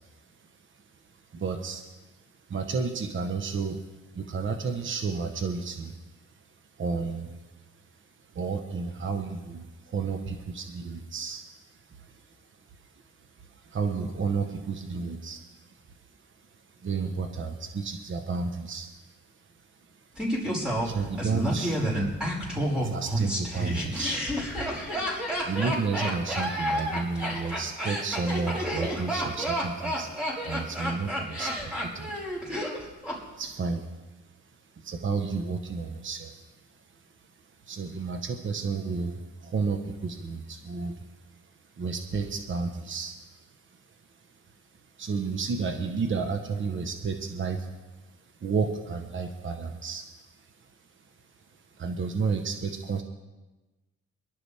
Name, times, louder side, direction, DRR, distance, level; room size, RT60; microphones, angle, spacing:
voice 1, 1.3-1.8 2.5-3.8 4.1-5.9 6.8-7.3 8.3-11.4 13.7-15.4 16.8-18.9 20.8-21.8 22.7-24.2 25.4-30.1 30.4-31.5 31.8-32.1 33.4-33.8 34.8-36.3 37.7-40.9 41.8-43.1 45.0-47.7 48.4-50.0 51.8-53.0, right 4 dB, 40° right, 5 dB, 1.3 m, -31 dB
Laughter, 20.2-33.2 33.4-33.5, equal, 5° right, 5.5 m, -30 dB
24.0 x 12.0 x 3.6 m, 1.1 s
cardioid pair, 90°, 30 cm